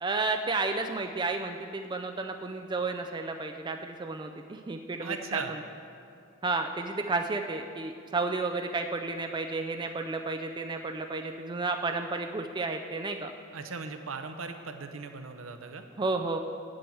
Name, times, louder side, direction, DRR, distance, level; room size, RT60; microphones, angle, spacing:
voice 1, 0.0-5.6 6.4-13.3 16.0-16.4, right 3 dB, 20° right, 5 dB, 0.4 m, -32 dB
voice 2, 5.0-5.5 13.5-15.8, right 4 dB, 70° right, 7 dB, 0.8 m, -38 dB
8.5 x 7.6 x 7.8 m, 2.6 s
head